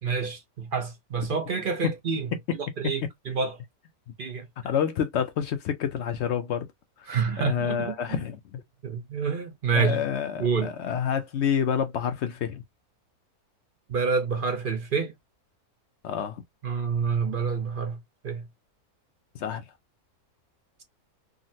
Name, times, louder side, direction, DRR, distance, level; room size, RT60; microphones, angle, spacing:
voice 1, 0.0-3.6 4.2-4.4 7.1-8.2 8.8-10.0 10.4-10.7 13.9-15.1 16.6-18.0 18.2-18.5, right 5 dB, 60° right, 0.5 m, -28 dB
voice 2, 4.6-6.7 7.4-8.6 9.7-12.6 16.0-16.4 19.4-19.6, left 8 dB, 65° left, 0.7 m, -28 dB
3.7 x 2.1 x 2.6 m
omnidirectional pair, 1.5 m